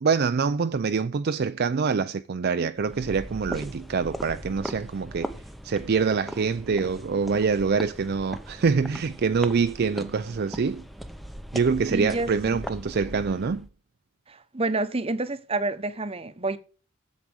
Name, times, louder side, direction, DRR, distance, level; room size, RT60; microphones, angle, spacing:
voice 1, 0.0-10.8 11.5-13.7, right 5 dB, 50° right, 0.4 m, -25 dB
sound 1, 2.8-13.7, equal, ahead, 0.7 m, -39 dB
voice 2, 11.9-12.6 14.3-16.6, right 2 dB, 25° right, 0.9 m, -29 dB
8.1 x 7.4 x 7.7 m
head